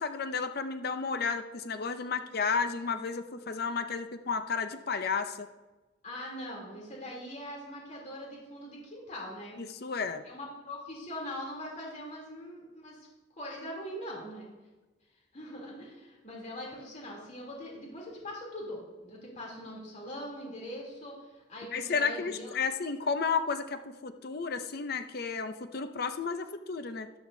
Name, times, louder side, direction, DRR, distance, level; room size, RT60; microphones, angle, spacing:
voice 1, 0.0-5.5 9.6-10.2 21.7-27.1, left 5 dB, 55° left, 9 dB, 0.6 m, -32 dB
voice 2, 6.0-9.6 10.2-13.0 13.3-14.5 15.3-22.6, equal, 40° left, -3 dB, 3.1 m, -42 dB
13.0 x 12.5 x 2.7 m, 1.2 s
head